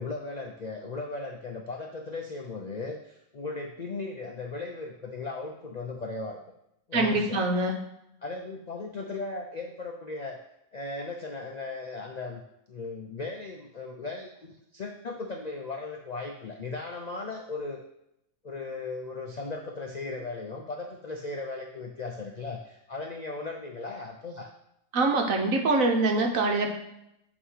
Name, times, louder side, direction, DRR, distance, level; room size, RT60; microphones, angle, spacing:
voice 1, 0.0-6.4 6.9-7.4 8.2-10.4 10.7-12.4 12.7-17.8 18.4-24.5, left 3 dB, 65° left, 2 dB, 0.4 m, -37 dB
voice 2, 6.9-7.8 24.9-26.7, right 2 dB, 65° right, 3 dB, 1.3 m, -24 dB
8.5 x 3.0 x 5.6 m, 0.81 s
omnidirectional pair, 1.6 m